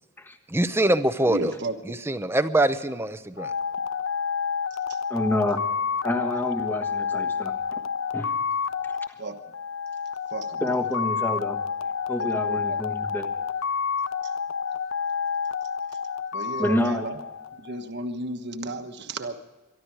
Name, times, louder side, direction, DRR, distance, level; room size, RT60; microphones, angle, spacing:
voice 1, 0.5-1.5 1.9-3.5, right 1 dB, 10° right, 11 dB, 0.7 m, -23 dB
voice 2, 1.3-2.0 9.2-9.4 10.3-10.6 12.2-12.8 16.3-17.2 17.6-19.4, right 2 dB, 50° right, 7 dB, 1.3 m, -33 dB
sound 1, 3.4-17.8, left 6 dB, 60° left, 0.5 m, -29 dB
voice 3, 5.1-5.6 6.0-7.8 8.1-8.3 8.8-9.0 10.6-11.6 12.1-13.3 16.6-17.1, left 1 dB, 10° left, 4 dB, 1.3 m, -28 dB
24.0 x 12.0 x 4.8 m, 1.1 s
head